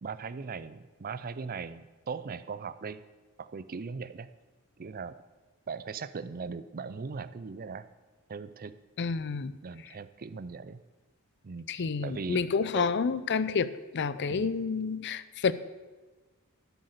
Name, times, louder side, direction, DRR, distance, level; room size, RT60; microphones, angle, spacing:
voice 1, 0.0-3.0 3.4-4.3 4.8-5.1 5.7-7.9 8.3-8.7 9.6-10.8 11.4-12.4 12.7-12.9 14.3-14.5, right 5 dB, 40° right, 14 dB, 0.5 m, -39 dB
voice 2, 9.0-9.5 11.7-15.5, left 5 dB, 55° left, 15 dB, 0.5 m, -29 dB
13.0 x 8.1 x 6.6 m, 1.3 s
head